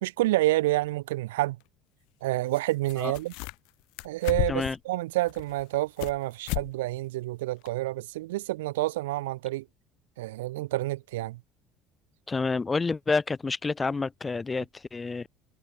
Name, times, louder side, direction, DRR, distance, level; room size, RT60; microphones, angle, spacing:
voice 1, 0.0-1.6 2.2-3.3 4.0-9.6 10.2-11.4, right 18 dB, 80° right, 1.2 m, -28 dB
sound 1, 0.8-0.9 2.5-2.6 2.9-3.7 4.0-4.8 5.3-6.2 6.5-6.7 7.0-7.1 7.7-7.8, left 29 dB, 70° left, 1.3 m, -33 dB
voice 2, 12.3-15.3, left 4 dB, 25° left, 1.8 m, -29 dB
hypercardioid pair, 65°, 0 cm